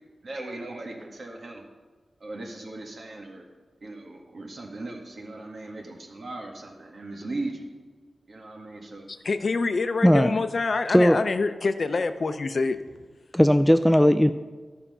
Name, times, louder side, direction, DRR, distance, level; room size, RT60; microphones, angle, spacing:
voice 1, 0.2-1.6 2.2-3.4 3.8-7.7 8.3-9.0, right 2 dB, 65° right, 1 dB, 1.7 m, -38 dB
voice 2, 9.2-12.8, left 4 dB, 60° left, 9 dB, 0.5 m, -26 dB
voice 3, 10.0-10.3 10.9-11.2 13.3-14.3, equal, 5° left, 10 dB, 0.3 m, -17 dB
12.5 x 5.7 x 5.5 m, 1.4 s
wide cardioid pair, 80°, 0 cm